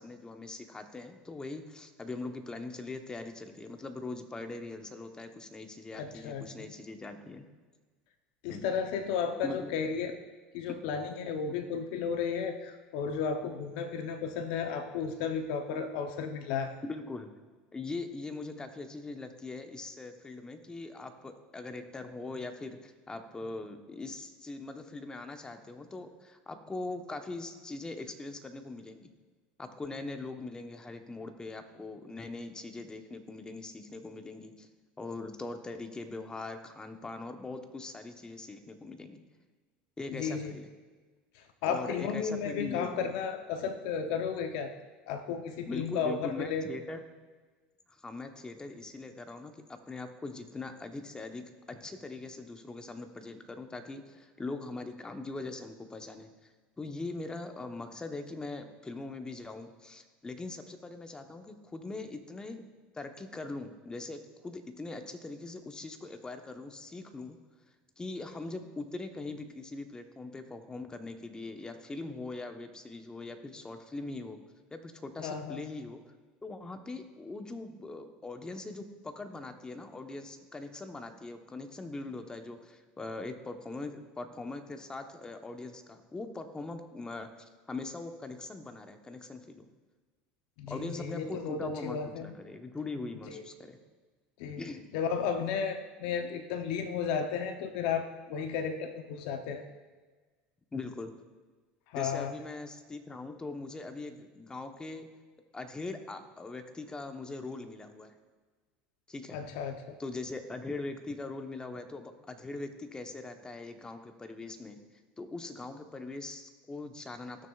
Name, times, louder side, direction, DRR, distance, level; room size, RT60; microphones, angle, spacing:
voice 1, 0.0-7.4 8.5-8.6 9.4-9.7 16.8-17.3 17.7-29.1 29.6-34.7 35.0-39.2 40.0-40.7 41.7-43.1 45.7-47.0 47.9-56.3 56.8-62.7 62.9-67.4 68.0-74.4 74.7-76.0 76.4-89.7 90.7-93.8 94.6-94.9 100.7-101.2 101.9-105.1 105.5-108.2 109.1-109.4 110.0-114.8 115.2-117.5, left 3 dB, 15° left, 6 dB, 1.0 m, -41 dB
voice 2, 5.9-6.7 8.4-10.1 10.5-16.8 40.1-40.5 41.3-44.7 45.1-46.7 75.2-75.6 90.6-92.3 93.3-93.4 94.4-94.6 94.9-99.6 101.9-102.3 109.3-110.0, left 6 dB, 75° left, 6 dB, 0.7 m, -33 dB
15.5 x 6.4 x 2.4 m, 1.4 s
supercardioid pair, 95°, 5 cm